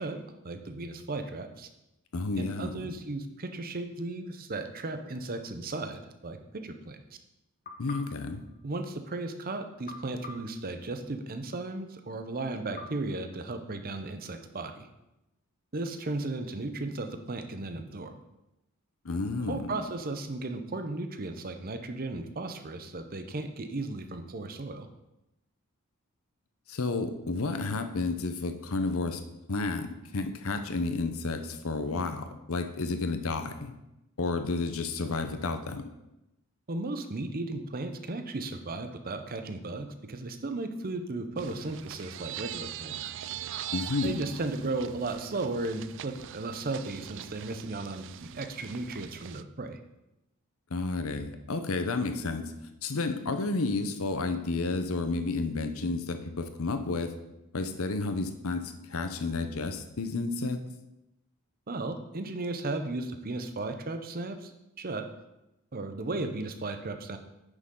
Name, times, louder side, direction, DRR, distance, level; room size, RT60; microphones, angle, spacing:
voice 1, 0.0-1.7 2.4-7.0 8.6-14.9 15.7-18.2 19.5-24.9 36.7-43.0 44.0-49.8 61.7-64.5 64.8-65.1 65.7-67.2, right 2 dB, 40° right, 7 dB, 0.8 m, -35 dB
voice 2, 2.1-2.9 7.8-8.4 19.0-19.8 26.7-29.2 29.5-33.7 34.2-35.9 43.7-44.2 50.7-52.4 52.8-57.1 57.5-60.6, left 3 dB, 65° left, 8 dB, 0.8 m, -31 dB
sound 1, 7.6-9.2 9.9-11.5 12.8-14.1, left 3 dB, 40° left, 1.1 m, -49 dB
sound 2, 41.4-49.4, right 11 dB, 55° right, 0.3 m, -42 dB
9.8 x 6.4 x 3.8 m, 0.92 s
head